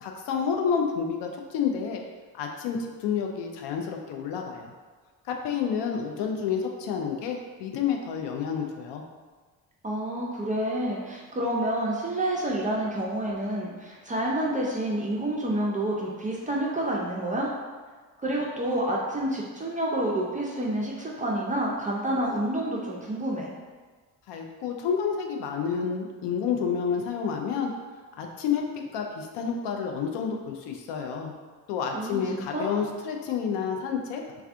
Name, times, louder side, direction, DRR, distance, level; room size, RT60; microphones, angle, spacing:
voice 1, 0.0-2.0 2.3-4.7 5.2-9.0 24.3-27.7 28.2-31.3 31.7-34.4, left 6 dB, 60° left, 2 dB, 0.5 m, -29 dB
voice 2, 9.8-17.5 18.2-23.5 31.9-32.7, right 1 dB, 15° right, -3 dB, 0.4 m, -28 dB
3.2 x 2.3 x 2.4 m, 1.4 s
hypercardioid pair, 45°, 50 cm